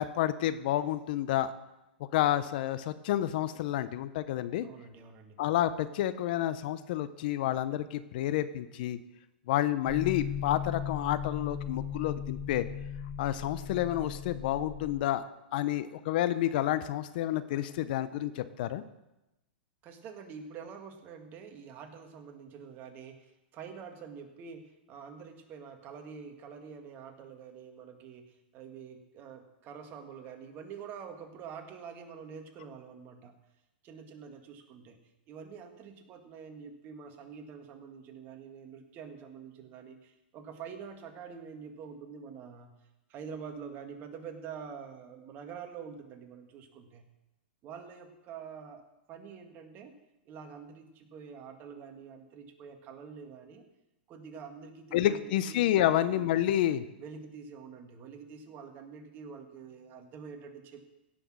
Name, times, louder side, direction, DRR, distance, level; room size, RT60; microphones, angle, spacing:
voice 1, 0.0-1.5 2.1-4.7 5.4-9.0 9.5-12.7 13.2-15.2 15.5-18.8 54.9-56.8, left 12 dB, 60° left, 13 dB, 0.7 m, -29 dB
voice 2, 4.6-5.4 19.8-33.3 33.8-35.0 35.3-42.7 43.1-47.1 47.6-49.9 50.3-53.6 54.1-55.7 56.0-56.3 57.0-60.9, right 6 dB, 35° right, 5 dB, 1.8 m, -46 dB
sound 1, 9.9-15.0, left 9 dB, 10° left, 0.8 m, -37 dB
16.5 x 6.2 x 6.3 m, 0.95 s
hypercardioid pair, 125°, 6 cm